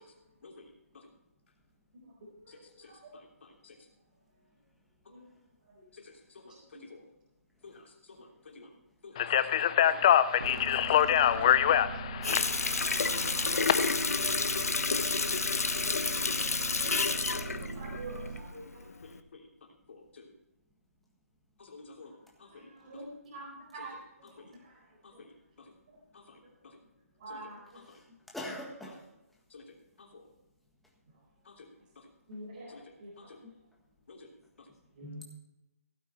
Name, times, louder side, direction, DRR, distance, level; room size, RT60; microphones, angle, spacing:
voice 1, 0.4-1.1 2.5-3.8 5.9-7.0 7.6-8.7 9.0-10.0 10.5-11.5 13.2-13.4 15.0-15.3 16.8-17.0 17.3-17.4 19.0-19.5 19.9-20.3 21.6-22.1 22.4-23.0 23.7-23.9 24.2-24.5 25.0-25.7 26.1-26.8 27.3-27.4 27.7-28.0 29.5-30.3 31.4-32.1 32.7-32.8 33.2-33.4 34.1-34.3 34.6-34.7, left 3 dB, 50° left, 1 dB, 3.2 m, -53 dB
voice 2, 2.4-2.9 5.1-5.2 5.7-5.9 6.5-6.6 13.7-13.9 17.5-18.9 22.5-24.0 24.6-24.8 25.1-25.2 27.2-27.6 32.3-32.7 33.0-33.1 34.9-35.2, right 2 dB, 35° right, -5 dB, 4.6 m, -46 dB
Speech, 9.2-13.7, left 10 dB, 20° left, 0.4 m, -25 dB
voice 3, 10.3-11.1 28.3-29.0 35.0-35.2, left 1 dB, ahead, -2 dB, 1.6 m, -43 dB
sound 1, 10.4-18.4, right 5 dB, 70° right, 1.3 m, -41 dB
Water tap faucet, 12.2-18.6 19.0-19.2, left 4 dB, 80° left, 1.1 m, -30 dB
16.5 x 9.1 x 4.4 m, 0.91 s
hypercardioid pair, 165°, 8 cm